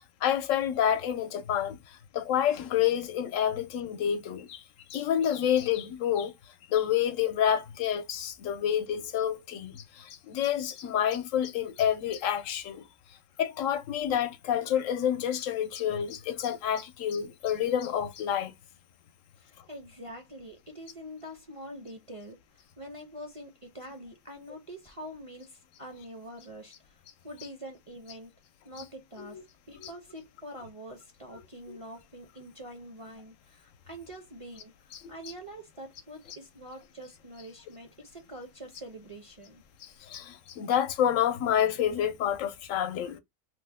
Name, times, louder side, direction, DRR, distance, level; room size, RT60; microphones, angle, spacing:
voice 1, 0.2-4.6 4.9-6.3 6.7-12.8 13.4-18.5 29.2-29.4 29.8-29.9 31.7-31.8 35.0-35.1 39.8-43.2, left 9 dB, 80° left, 1.0 m, -28 dB
voice 2, 19.4-28.3 28.6-29.4 29.7-39.6, equal, 40° right, 0.5 m, -45 dB
3.2 x 2.1 x 3.3 m
omnidirectional pair, 1.4 m